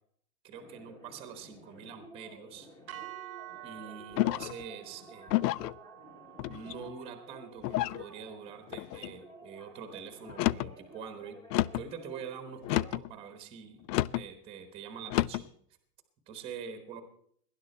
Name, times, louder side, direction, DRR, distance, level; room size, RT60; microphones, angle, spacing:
voice 1, 0.4-2.7 3.6-5.3 6.4-11.4 11.7-13.9 14.1-15.5 16.3-17.0, right 7 dB, 10° right, 8 dB, 1.0 m, -45 dB
sound 1, 0.5-13.0, right 1 dB, 10° left, 1.1 m, -54 dB
sound 2, 2.9-11.1, right 15 dB, 60° right, 0.9 m, -51 dB
sound 3, 4.2-4.6 5.3-5.8 6.4-6.9 7.6-8.0 8.7-9.1 10.3-10.7 11.5-11.9 12.6-13.1 13.9-14.3 15.1-15.5, left 16 dB, 85° left, 0.5 m, -30 dB
19.0 x 10.5 x 4.2 m, 0.65 s
supercardioid pair, 175°, 47 cm